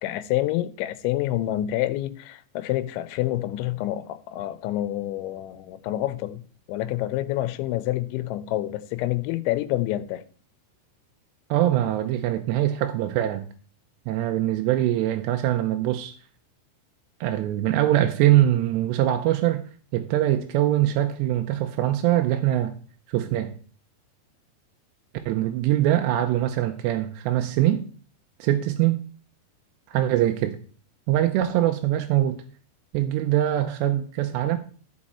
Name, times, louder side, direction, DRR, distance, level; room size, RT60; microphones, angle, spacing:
voice 1, 0.0-6.4 6.7-10.2, left 14 dB, 90° left, 3.0 m, -27 dB
voice 2, 11.5-13.5 14.1-16.1 17.2-19.6 19.9-22.8 23.1-23.5 25.3-27.8 28.4-29.0 29.9-30.6 31.1-32.4 32.9-34.6, right 13 dB, 85° right, 2.8 m, -23 dB
13.5 x 5.3 x 4.2 m
omnidirectional pair, 5.2 m